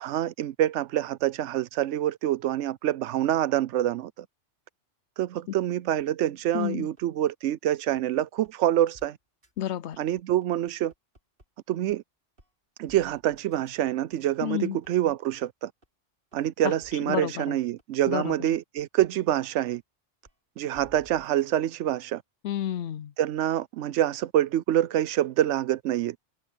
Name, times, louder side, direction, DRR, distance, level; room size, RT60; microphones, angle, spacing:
voice 1, 0.0-4.3 5.2-9.2 10.0-10.9 11.7-12.0 12.8-15.7 16.3-19.8 20.6-22.2 23.2-26.2, right 12 dB, 80° right, 0.9 m, -26 dB
sound 1, 6.0-7.5 8.0-8.1 8.4-8.5 8.9-9.1 9.4-9.5 9.9-11.4 11.9-12.0 12.4-12.5 12.9-15.4 15.8-15.9 16.3-16.4 16.8-16.9 17.3-17.4 17.8-19.3 19.8-19.9 20.2-20.3 20.7-21.6, right 1 dB, 50° right, 5.9 m, -56 dB
voice 2, 6.5-6.9 9.6-10.0 14.4-14.8 16.6-16.7 17.1-17.6 18.1-18.5 22.4-23.1, left 11 dB, 70° left, 0.9 m, -30 dB
omnidirectional pair, 1.2 m